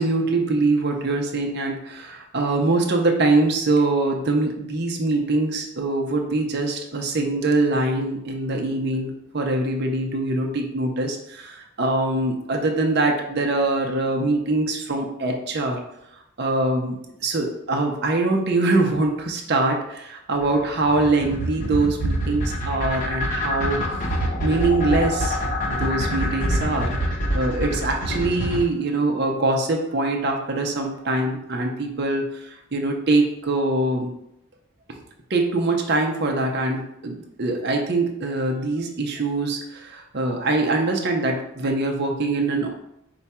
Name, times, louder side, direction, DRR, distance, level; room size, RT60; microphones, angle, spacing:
voice 1, 0.0-15.8 16.4-17.0 17.2-23.8 24.4-25.4 25.7-34.1 34.9-35.0 35.3-42.7, right 2 dB, 50° right, 2 dB, 0.6 m, -23 dB
sound 1, 20.4-28.6, equal, 35° left, 0.8 m, -25 dB
4.6 x 2.3 x 4.2 m, 0.81 s
head